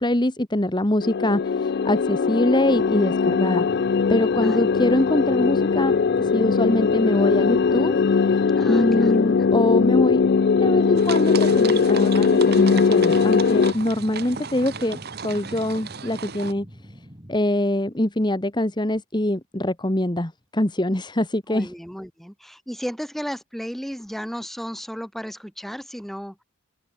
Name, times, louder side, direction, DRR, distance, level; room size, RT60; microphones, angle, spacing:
voice 1, 0.0-3.7 4.1-7.9 8.3-16.6 17.3-21.7, left 1 dB, 20° left, 1.4 m, -24 dB
sound 1, 1.0-13.7, left 5 dB, 50° left, 0.4 m, -20 dB
sound 2, 3.6-17.4, equal, 20° right, 5.5 m, -45 dB
voice 2, 4.4-4.9 8.5-9.5 21.5-26.4, equal, ahead, 4.6 m, -34 dB
sound 3, 10.9-16.5, right 6 dB, 50° right, 1.0 m, -35 dB
head